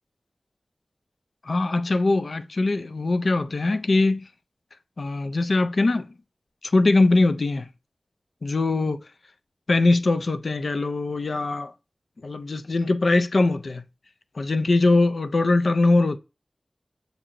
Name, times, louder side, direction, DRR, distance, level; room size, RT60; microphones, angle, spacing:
voice 1, 1.4-4.3 5.0-6.1 6.6-7.7 8.4-9.0 9.7-11.7 12.2-13.8 14.4-16.2, left 2 dB, 75° left, 0.3 m, -21 dB
6.4 x 2.4 x 2.9 m
cardioid pair, 40°, 0 cm